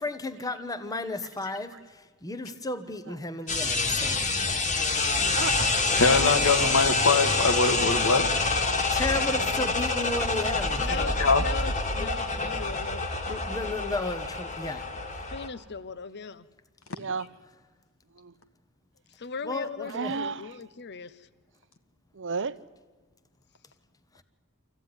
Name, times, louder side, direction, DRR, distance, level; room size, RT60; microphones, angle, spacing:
voice 1, 0.0-1.7 2.2-4.2 8.9-11.1 12.0-12.1 13.3-14.8 19.4-20.1, left 2 dB, 15° left, 1.1 m, -33 dB
sound 1, 3.5-15.5, left 3 dB, 35° left, 2.0 m, -27 dB
voice 2, 5.2-5.7 16.9-17.3 18.1-18.3 19.8-20.6 22.1-22.6, right 5 dB, 60° right, 0.8 m, -33 dB
voice 3, 6.0-8.3 11.2-11.4 13.3-13.4, left 3 dB, 70° left, 1.7 m, -23 dB
voice 4, 10.7-13.0 15.3-16.5 19.2-21.1, left 5 dB, 50° left, 0.8 m, -38 dB
26.5 x 15.0 x 9.7 m
head